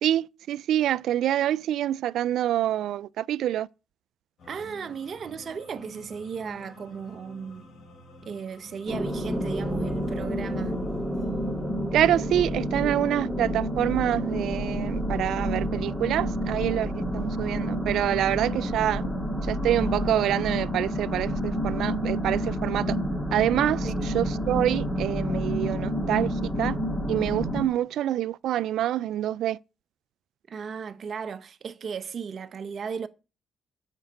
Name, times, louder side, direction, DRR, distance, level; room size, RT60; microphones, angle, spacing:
voice 1, 0.0-3.7 11.9-19.0 19.5-23.0 23.3-26.8 27.1-29.6, right 12 dB, 80° right, 0.4 m, -26 dB
sound 1, 4.4-17.6, left 1 dB, 65° left, 4.2 m, -51 dB
voice 2, 4.4-7.6 8.2-10.8 23.8-24.1 30.5-33.1, right 6 dB, 50° right, 0.8 m, -36 dB
sound 2, 8.9-27.6, equal, 10° left, 2.3 m, -29 dB
7.2 x 6.0 x 6.5 m
cardioid pair, 90°, 0 cm